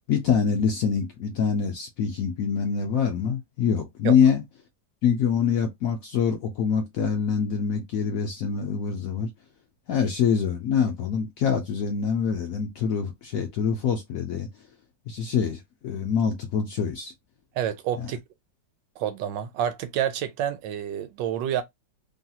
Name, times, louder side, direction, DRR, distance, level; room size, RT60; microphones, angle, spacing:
voice 1, 0.1-4.4 5.0-9.3 9.9-14.5 15.1-17.1, left 7 dB, 70° left, 0.8 m, -25 dB
voice 2, 17.5-18.2 19.0-21.6, right 10 dB, 85° right, 1.3 m, -28 dB
3.1 x 2.8 x 2.3 m
omnidirectional pair, 2.0 m